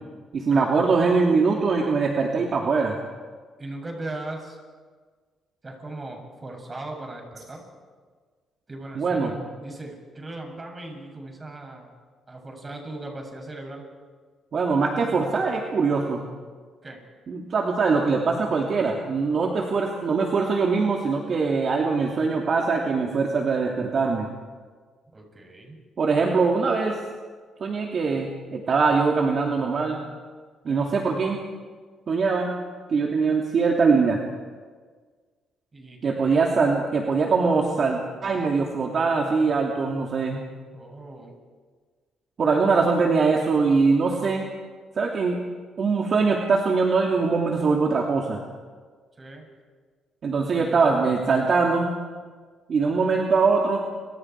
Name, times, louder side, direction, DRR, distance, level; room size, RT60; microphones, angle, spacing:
voice 1, 0.3-3.0 9.0-9.3 14.5-16.2 17.3-24.3 26.0-27.0 27.6-30.0 30.6-31.4 32.1-32.6 32.9-34.2 36.0-40.4 42.4-44.5 45.0-45.4 45.8-48.4 50.2-51.9 52.7-53.8, right 4 dB, 50° right, 0 dB, 2.8 m, -22 dB
voice 2, 3.6-4.6 5.6-7.6 8.7-11.9 12.3-13.9 16.8-17.0 25.1-25.8 30.7-30.8 35.7-36.4 40.7-41.3 49.2-49.5, right 2 dB, 25° right, 2 dB, 7.8 m, -38 dB
29.5 x 26.0 x 4.8 m, 1.5 s
cardioid pair, 90°, 0 cm